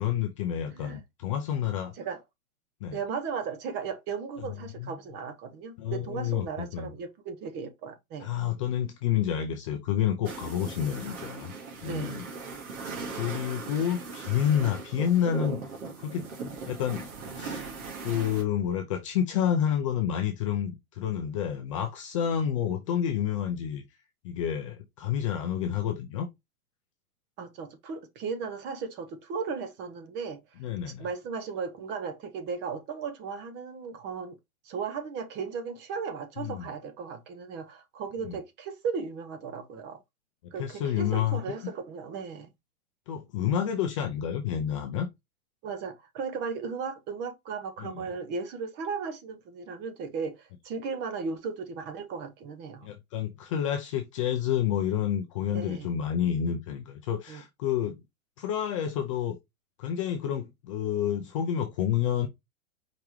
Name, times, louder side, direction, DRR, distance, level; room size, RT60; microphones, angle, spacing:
voice 1, 0.0-1.9 2.8-3.0 4.8-4.9 5.8-6.9 8.2-11.5 11.8-12.2 13.1-15.7 16.0-16.2 16.7-17.1 17.4-17.7 18.0-23.8 24.2-26.3 30.6-31.1 36.4-36.7 38.2-38.4 40.6-41.6 43.1-45.1 47.8-48.0 52.8-58.0 58.4-59.4 59.8-62.3, left 9 dB, 25° left, 0.4 m, -29 dB
voice 2, 0.7-1.0 1.9-2.2 2.9-8.3 11.8-12.2 27.4-30.4 30.9-34.4 34.6-40.0 40.5-42.5 45.6-52.9 55.5-55.9 57.3-57.4, right 5 dB, 25° right, 0.8 m, -36 dB
sound 1, 10.2-18.4, right 4 dB, 80° right, 2.3 m, -38 dB
4.9 x 3.4 x 3.0 m
hypercardioid pair, 145°, 43 cm